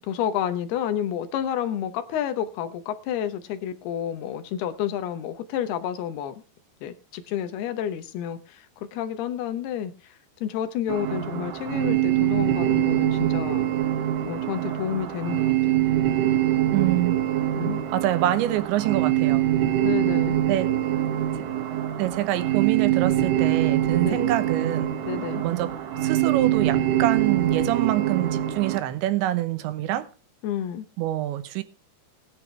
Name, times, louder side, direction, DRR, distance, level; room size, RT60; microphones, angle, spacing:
voice 1, 0.1-6.4 6.8-8.7 8.9-9.9 10.4-13.7 14.3-15.9 17.6-17.8 19.8-20.4 24.0-24.3 25.0-25.4 30.4-30.9, left 10 dB, 75° left, 2.7 m, -30 dB
sound 1, 10.9-28.8, right 12 dB, 70° right, 3.6 m, -24 dB
voice 2, 16.7-17.2 17.9-19.5 20.5-20.7 22.0-24.9 25.4-25.7 26.0-30.1 31.0-31.6, right 14 dB, 85° right, 3.4 m, -26 dB
19.5 x 10.5 x 3.4 m
omnidirectional pair, 5.1 m